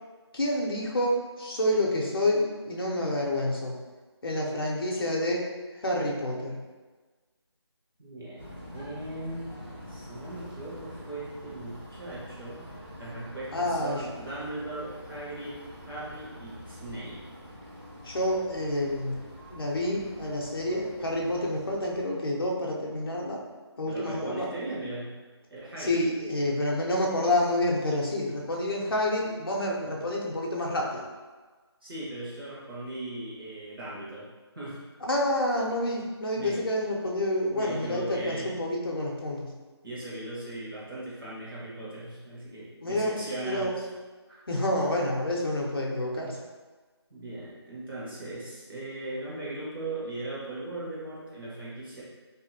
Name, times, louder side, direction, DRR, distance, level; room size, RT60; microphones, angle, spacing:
voice 1, 0.3-3.8 4.2-5.5 5.7-6.6 13.5-14.1 18.0-19.2 19.5-23.4 23.8-24.5 25.8-31.0 35.0-39.5 42.8-43.1 43.4-43.8 44.5-46.4, left 1 dB, 55° left, -2 dB, 0.6 m, -28 dB
voice 2, 8.0-8.4 8.7-9.5 9.9-12.7 13.0-17.2 23.9-25.2 25.5-26.0 31.8-34.3 34.5-34.8 36.4-36.6 37.5-38.5 39.8-43.7 44.3-44.4 47.1-52.0, right 2 dB, 50° right, -7 dB, 1.1 m, -38 dB
sound 1, 8.4-22.0, equal, 20° right, 0.5 m, -46 dB
2.7 x 2.4 x 2.6 m, 1.3 s
figure-of-eight pair, 180°, 15 cm